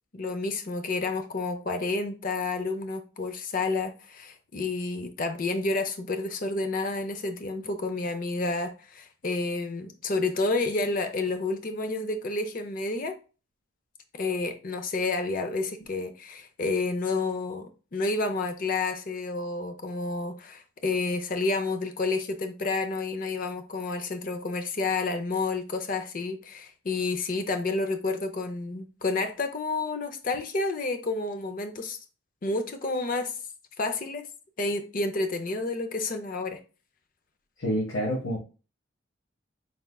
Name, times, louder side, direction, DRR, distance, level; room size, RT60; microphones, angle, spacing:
voice 1, 0.1-13.2 14.1-32.0 32.4-33.3 33.8-34.3 34.6-36.6, left 3 dB, 40° left, 0.5 m, -30 dB
voice 2, 37.6-38.4, equal, 85° left, 1.5 m, -28 dB
4.8 x 3.5 x 2.3 m
head